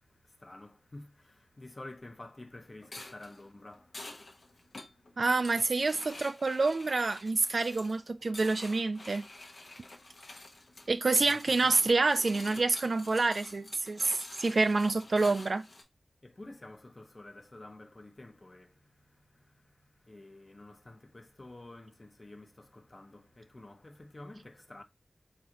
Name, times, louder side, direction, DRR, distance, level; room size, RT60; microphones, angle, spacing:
voice 1, 0.0-4.5 4.8-5.2 10.0-10.7 11.2-12.0 16.2-24.8, left 2 dB, 45° left, 0.9 m, -51 dB
sound 1, 2.8-15.8, left 2 dB, 80° left, 1.0 m, -48 dB
voice 2, 5.2-9.2 10.9-15.7, right 3 dB, 75° right, 0.3 m, -27 dB
3.9 x 3.8 x 2.9 m
cardioid pair, 40°, 0 cm